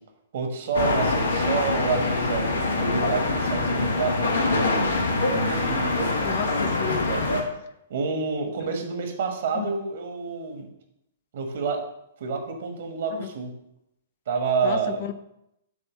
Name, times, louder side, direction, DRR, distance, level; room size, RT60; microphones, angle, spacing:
voice 1, 0.3-2.5 2.8-6.1 7.1-7.2 7.9-10.7 11.3-11.8 12.2-13.5 14.3-15.0, right 4 dB, 55° right, 4 dB, 1.4 m, -28 dB
sound 1, 0.7-7.4, left 2 dB, 75° left, 1.3 m, -24 dB
voice 2, 6.2-7.1 9.5-9.7 13.1-13.3 14.6-15.1, left 10 dB, 50° left, 10 dB, 0.5 m, -32 dB
7.7 x 3.5 x 6.0 m, 0.81 s
figure-of-eight pair, 115°, 0 cm